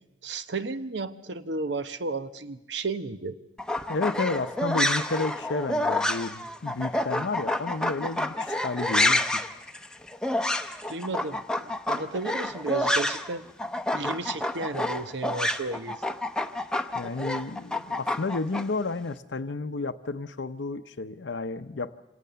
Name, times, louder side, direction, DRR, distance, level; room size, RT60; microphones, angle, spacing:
voice 1, 0.2-3.4 10.9-13.5 13.9-16.0, right 3 dB, 70° right, 12 dB, 1.0 m, -33 dB
sound 1, 3.6-13.3 13.6-18.6, left 1 dB, 5° left, 0.7 m, -28 dB
voice 2, 3.9-9.4 16.9-21.9, left 3 dB, 85° left, 8 dB, 0.7 m, -31 dB
26.0 x 18.0 x 6.9 m, 0.95 s
head